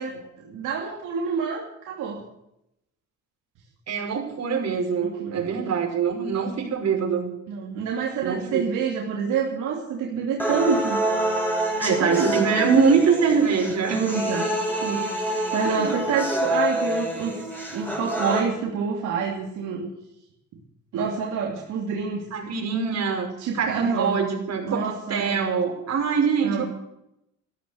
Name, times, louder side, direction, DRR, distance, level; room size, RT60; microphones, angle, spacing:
voice 1, 0.0-2.2 5.0-5.5 7.5-11.3 12.0-12.5 13.9-14.5 14.8-17.3 17.7-19.9 20.9-22.3 23.4-24.1 24.6-25.4 26.4-26.6, right 6 dB, 85° right, -2 dB, 3.0 m, -27 dB
voice 2, 3.9-7.3 8.2-8.6 11.8-14.0 15.6-15.9 22.3-23.3 23.6-24.8 25.1-26.6, right 6 dB, 60° right, 2 dB, 5.5 m, -23 dB
sound 1, 10.4-18.4, right 1 dB, 5° left, 6.4 m, -27 dB
14.0 x 13.5 x 6.6 m, 0.82 s
cardioid pair, 90°, 30 cm